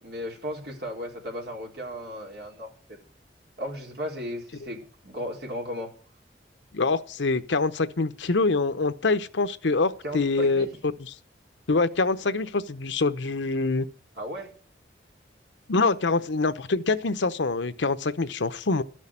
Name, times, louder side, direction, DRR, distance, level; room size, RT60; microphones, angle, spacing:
voice 1, 0.0-2.7 3.6-5.9 10.0-10.7 14.2-14.5, equal, 60° right, 4.2 m, -35 dB
voice 2, 6.7-10.7 11.0-11.1 11.7-13.9 15.7-18.8, left 3 dB, 85° left, 0.8 m, -25 dB
13.0 x 6.4 x 9.9 m
head